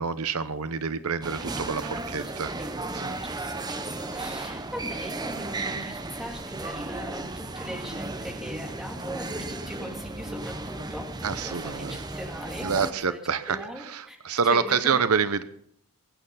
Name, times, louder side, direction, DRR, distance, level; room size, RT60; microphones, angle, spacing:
voice 1, 0.0-2.5 2.9-3.2 11.2-12.0 12.6-15.4, right 6 dB, 80° right, 13 dB, 0.8 m, -27 dB
sound 1, 1.2-12.9, right 2 dB, 20° right, 0.8 m, -35 dB
voice 2, 2.1-11.1 11.4-11.7 12.1-13.2 13.5-15.0, equal, ahead, 0 dB, 2.8 m, -40 dB
22.5 x 9.1 x 5.7 m, 0.67 s
head